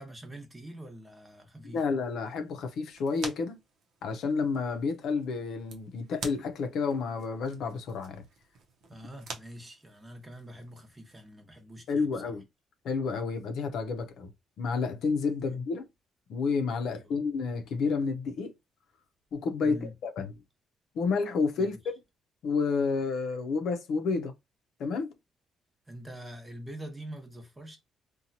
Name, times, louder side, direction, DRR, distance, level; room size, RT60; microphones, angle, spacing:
voice 1, 0.0-1.8 8.9-12.4 15.5-15.6 17.0-17.2 19.6-19.9 21.6-21.7 25.9-27.8, right 1 dB, 20° right, 0.9 m, -45 dB
voice 2, 1.7-3.6 4.0-8.2 11.9-12.4 12.8-14.3 14.6-15.9 16.3-18.5 19.3-20.3 20.9-21.8 22.4-24.3 24.8-25.1, left 4 dB, 75° left, 0.6 m, -30 dB
sound 1, 1.7-11.3, right 4 dB, 75° right, 0.7 m, -48 dB
2.8 x 2.3 x 2.7 m
cardioid pair, 90°, 0 cm